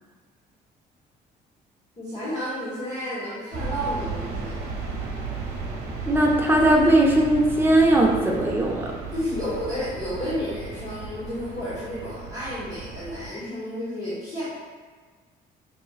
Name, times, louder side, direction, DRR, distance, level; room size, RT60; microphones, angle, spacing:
voice 1, 2.0-4.6 9.1-14.4, equal, 40° left, -10 dB, 1.2 m, -31 dB
sound 1, 3.5-13.3, right 4 dB, 80° right, 0.9 m, -35 dB
voice 2, 6.1-8.9, right 1 dB, 15° right, -1 dB, 0.6 m, -19 dB
5.8 x 3.0 x 2.4 m, 1.5 s
cardioid pair, 110°, 17 cm